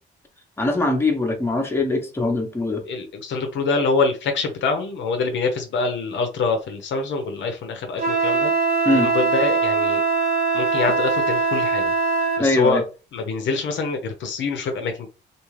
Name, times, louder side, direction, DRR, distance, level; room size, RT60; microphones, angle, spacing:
voice 1, 0.6-2.8 8.8-9.1 12.4-12.8, left 2 dB, 10° left, 0.8 m, -22 dB
voice 2, 2.9-8.5 8.9-10.0 10.5-11.8 12.4-12.8 13.1-15.1, left 4 dB, 70° left, 0.7 m, -25 dB
Wind instrument woodwind instrument, 8.0-12.5, right 4 dB, 50° right, 0.8 m, -21 dB
2.5 x 2.4 x 3.1 m
cardioid pair, 90°, 20 cm